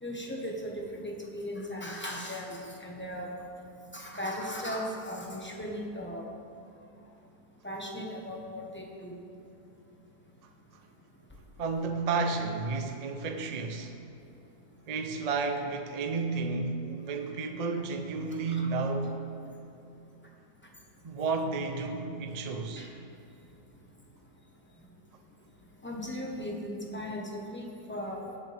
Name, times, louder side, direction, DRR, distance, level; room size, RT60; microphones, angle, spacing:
voice 1, 0.0-3.3 3.9-6.2 7.6-9.1 18.5-18.6 22.8-22.9 25.8-28.2, equal, 10° left, -1 dB, 0.9 m, -37 dB
voice 2, 11.6-13.9 14.9-19.2 21.0-22.9, right 4 dB, 60° right, 5 dB, 0.4 m, -32 dB
17.5 x 7.0 x 3.4 m, 2.7 s
omnidirectional pair, 1.8 m